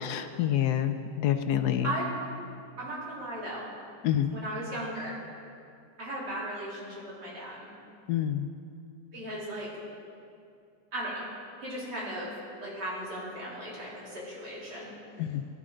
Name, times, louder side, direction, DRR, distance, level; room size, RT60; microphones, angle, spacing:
voice 1, 0.0-1.9 4.0-4.3 8.1-8.5 15.2-15.4, left 11 dB, 70° left, 9 dB, 1.0 m, -27 dB
voice 2, 2.8-3.7 4.3-5.2 6.0-7.7 9.1-9.7 10.9-11.3 11.6-12.3 12.6-14.9, right 1 dB, 65° right, -7 dB, 3.8 m, -36 dB
16.0 x 11.0 x 3.8 m, 2.4 s
omnidirectional pair, 1.9 m